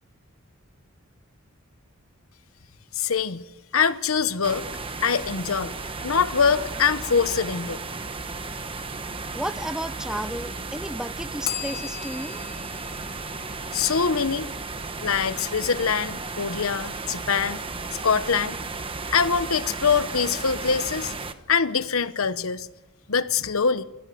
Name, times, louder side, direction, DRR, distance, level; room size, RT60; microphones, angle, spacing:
voice 1, 2.9-3.5 3.7-4.6 5.0-5.8 6.0-7.8 13.7-14.5 15.0-17.6 18.0-18.6 19.1-21.1 21.5-22.7 23.1-23.8, left 6 dB, 80° left, 1.0 m, -24 dB
sound 1, 4.4-21.3, right 3 dB, 25° right, 1.1 m, -34 dB
voice 2, 9.3-12.4, right 1 dB, 5° right, 0.6 m, -33 dB
Bell, 11.4-14.3, left 10 dB, 45° left, 1.4 m, -37 dB
24.5 x 16.0 x 7.7 m
head